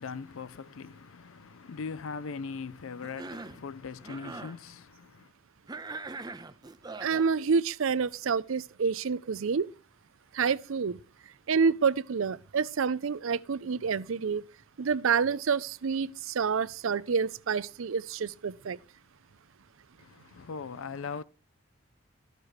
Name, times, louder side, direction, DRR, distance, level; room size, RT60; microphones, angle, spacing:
voice 1, 0.0-5.3 20.0-21.2, left 5 dB, 70° left, 0.5 m, -40 dB
Cough, 3.0-3.6 4.0-4.6 5.7-7.3, right 3 dB, 20° right, 0.5 m, -41 dB
voice 2, 7.0-9.7 10.3-11.0 11.5-14.4 14.8-18.8, right 5 dB, 70° right, 0.5 m, -28 dB
13.5 x 6.7 x 4.8 m
head